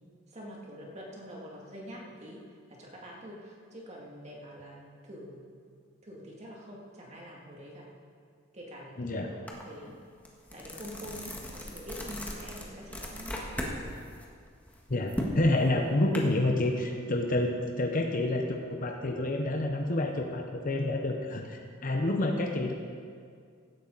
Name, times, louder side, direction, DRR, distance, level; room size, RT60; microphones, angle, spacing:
voice 1, 0.3-2.4 2.7-5.4 6.0-7.9 8.5-9.3 9.7-10.0 10.5-11.4 11.6-13.8, equal, 35° right, -3 dB, 2.5 m, -45 dB
voice 2, 9.0-9.3 14.9-22.7, left 1 dB, 45° left, 2 dB, 0.9 m, -28 dB
sound 1, 9.5-9.6 10.0-13.8 14.1-16.2, left 1 dB, 10° left, 1.6 m, -37 dB
16.0 x 11.5 x 4.1 m, 2.1 s
head